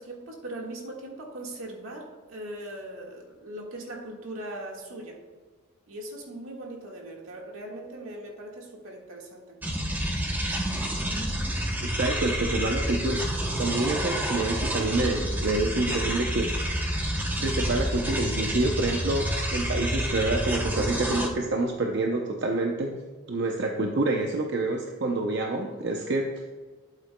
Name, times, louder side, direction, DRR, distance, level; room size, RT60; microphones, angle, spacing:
voice 1, 0.0-5.2 5.9-9.6, right 1 dB, 75° right, -1 dB, 1.7 m, -40 dB
sound 1, 9.6-21.3, equal, 10° right, 0.8 m, -29 dB
voice 2, 11.8-13.2 13.6-16.9 17.4-23.0 23.3-26.3, right 2 dB, 55° right, 1 dB, 0.7 m, -27 dB
12.0 x 8.2 x 2.2 m, 1.4 s
head